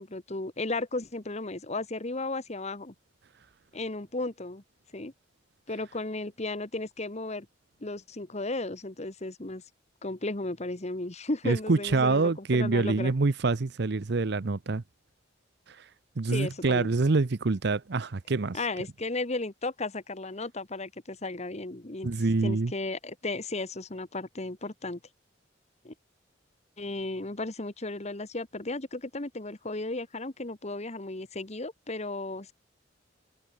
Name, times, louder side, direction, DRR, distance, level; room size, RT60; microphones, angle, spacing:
voice 1, 0.0-2.9 3.7-4.6 4.9-5.1 5.7-7.5 7.8-9.6 10.0-13.1 16.3-16.9 18.5-22.1 22.4-25.0 25.8-25.9 26.8-32.5, left 2 dB, 35° left, 1.5 m, -34 dB
voice 2, 11.4-14.8 16.2-18.6 22.0-22.7, right 3 dB, 60° right, 0.7 m, -26 dB
head